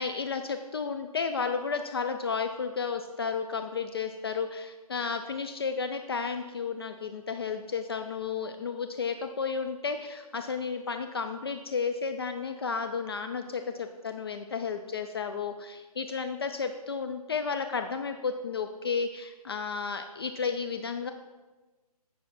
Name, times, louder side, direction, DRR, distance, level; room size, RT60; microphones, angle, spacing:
voice 1, 0.0-21.1, left 5 dB, 40° left, 7 dB, 0.4 m, -32 dB
9.4 x 5.7 x 4.4 m, 1.2 s
figure-of-eight pair, 150°, 20 cm